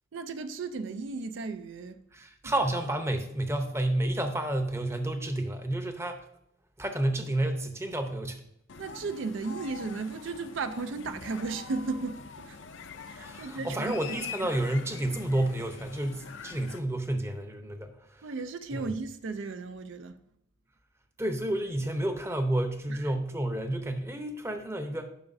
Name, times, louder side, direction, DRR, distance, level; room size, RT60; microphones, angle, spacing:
voice 1, 0.1-2.0 2.4-2.5 8.8-12.6 13.0-14.5 18.2-20.1 22.9-23.0, right 4 dB, 70° right, 0.4 m, -35 dB
voice 2, 2.1-6.3 6.8-8.4 13.2-18.3 18.7-18.9 21.2-25.1, right 1 dB, 15° right, 0.7 m, -30 dB
sound 1, 8.7-16.8, left 6 dB, 70° left, 0.6 m, -44 dB
11.0 x 5.8 x 2.6 m
head